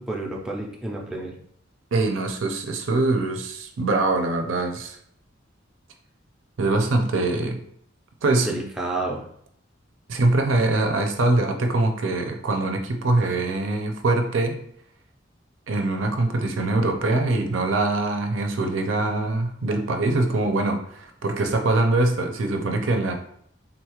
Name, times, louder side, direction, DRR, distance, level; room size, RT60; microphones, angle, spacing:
voice 1, 0.0-1.3 8.4-9.3, right 2 dB, 5° right, -3 dB, 0.5 m, -30 dB
voice 2, 1.9-5.0 6.6-7.6 8.2-8.5 10.1-14.6 15.7-23.1, right 2 dB, 85° right, 4 dB, 0.5 m, -23 dB
3.7 x 2.3 x 3.0 m, 0.67 s
head